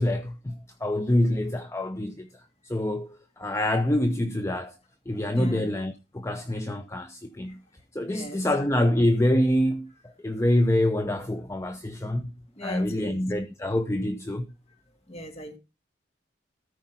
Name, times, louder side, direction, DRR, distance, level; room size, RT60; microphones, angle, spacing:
voice 1, 0.0-2.3 2.7-4.7 5.1-7.6 7.9-12.3 12.6-14.5, left 1 dB, 15° left, 0.6 m, -26 dB
voice 2, 5.3-5.7 8.1-8.5 12.6-13.2 15.1-15.6, left 1 dB, 35° left, 2.0 m, -35 dB
13.5 x 5.1 x 5.7 m
head